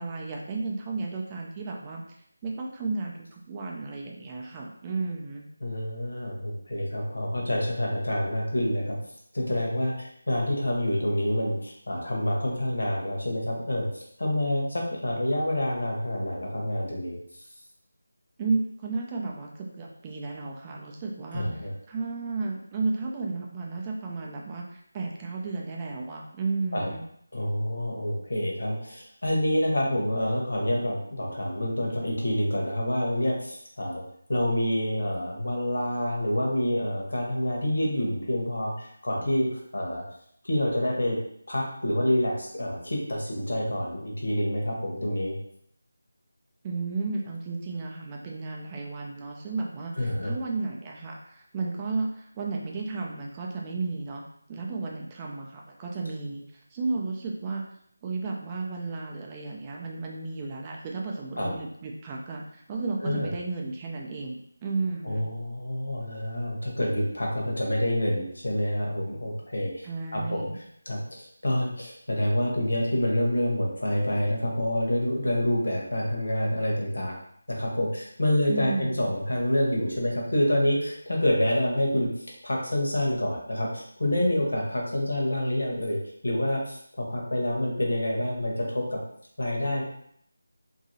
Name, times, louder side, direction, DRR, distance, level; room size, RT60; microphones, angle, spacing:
voice 1, 0.0-2.0 2.4-5.4 18.4-27.0 46.6-56.4 56.7-57.6 58.0-65.3 69.8-70.6 78.5-79.1, right 3 dB, 20° right, -1 dB, 0.3 m, -33 dB
voice 2, 5.6-9.0 9.3-17.2 21.3-21.7 26.7-26.9 27.3-34.0 34.3-40.0 40.4-41.2 41.5-45.4 50.0-50.4 61.4-61.5 63.0-63.3 65.0-69.9 70.1-70.5 70.9-77.1 77.5-82.1 82.4-86.0 86.2-89.0 89.4-89.8, left 1 dB, 70° left, -2 dB, 1.0 m, -27 dB
2.8 x 2.7 x 2.7 m, 0.68 s
figure-of-eight pair, 160°, 0 cm